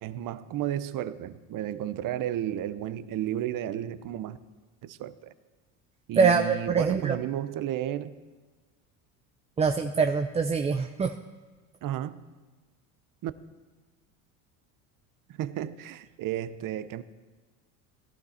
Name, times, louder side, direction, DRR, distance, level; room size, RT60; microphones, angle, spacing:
voice 1, 0.0-4.4 4.8-5.3 6.1-8.1 11.8-12.2 13.2-13.3 15.3-17.0, right 11 dB, 45° right, 14 dB, 0.8 m, -33 dB
voice 2, 6.2-7.2 9.6-11.2, right 5 dB, 15° right, 6 dB, 0.4 m, -24 dB
17.5 x 11.5 x 4.3 m, 1.3 s
supercardioid pair, 95°, 44 cm